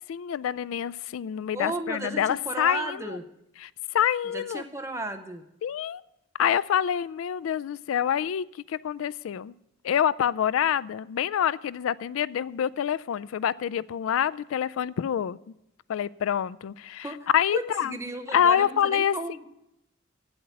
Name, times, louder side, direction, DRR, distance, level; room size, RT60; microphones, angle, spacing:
voice 1, 0.1-3.2 3.6-4.6 5.6-6.0 6.4-9.5 9.8-15.4 15.9-17.1 17.3-18.0 18.3-19.1, left 9 dB, 85° left, 19 dB, 0.3 m, -26 dB
voice 2, 1.5-3.3 4.3-5.4 17.0-19.5, right 2 dB, 15° right, 6 dB, 0.8 m, -34 dB
8.7 x 7.9 x 8.3 m, 0.85 s
head